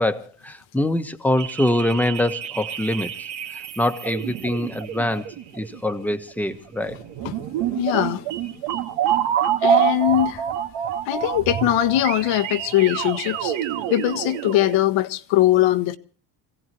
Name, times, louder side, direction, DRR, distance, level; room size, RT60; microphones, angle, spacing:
voice 1, 0.0-3.1 3.8-7.0, left 1 dB, 5° left, 1.2 m, -24 dB
sound 1, 1.4-14.8, right 9 dB, 85° right, 2.2 m, -27 dB
voice 2, 7.7-8.2 9.6-10.4 11.1-13.5 13.9-16.0, left 13 dB, 85° left, 1.5 m, -21 dB
27.5 x 17.0 x 3.0 m
cardioid pair, 155°, 44 cm